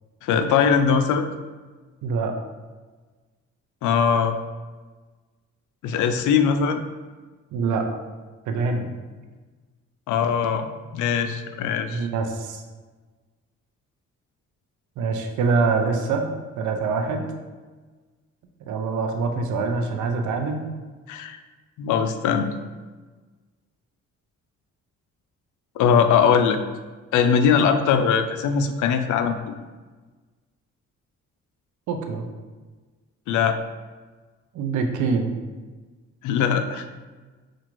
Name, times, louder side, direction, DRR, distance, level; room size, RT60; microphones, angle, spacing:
voice 1, 0.2-1.3 3.8-4.3 5.8-6.8 10.1-10.7 10.9-12.1 21.1-21.4 21.8-22.5 25.8-26.6 27.1-29.6 33.3-33.6 36.2-36.9, left 7 dB, 80° left, 8 dB, 0.5 m, -21 dB
voice 2, 2.0-2.3 7.5-7.9 8.5-8.9 11.9-12.6 15.0-16.3 16.6-17.3 18.6-20.7 31.9-32.3 34.5-35.3, right 4 dB, 75° right, 5 dB, 0.6 m, -24 dB
5.9 x 2.5 x 3.0 m, 1.3 s
cardioid pair, 90°, 30 cm